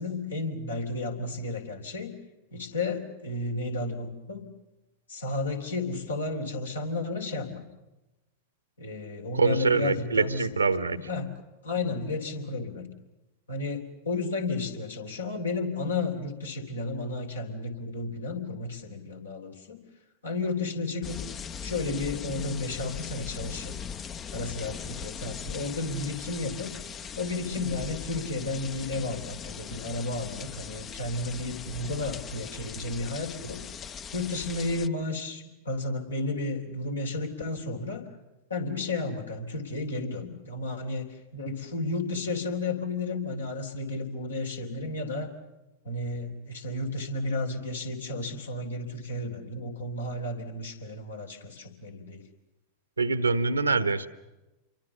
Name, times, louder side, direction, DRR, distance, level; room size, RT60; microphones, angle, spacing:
voice 1, 0.0-2.1 2.5-4.5 5.1-7.6 8.8-10.5 10.9-11.3 11.6-12.9 13.5-19.8 20.2-21.2 21.6-23.7 24.3-26.7 27.2-33.6 34.1-38.1 38.5-45.3 45.8-52.2, left 2 dB, 75° left, 3 dB, 3.4 m, -32 dB
voice 2, 9.3-11.0 53.0-54.1, right 4 dB, 80° right, 14 dB, 1.2 m, -25 dB
sound 1, 21.0-34.9, left 7 dB, 25° left, 0.8 m, -40 dB
28.0 x 23.5 x 6.9 m, 1.0 s
figure-of-eight pair, 90°, 0 cm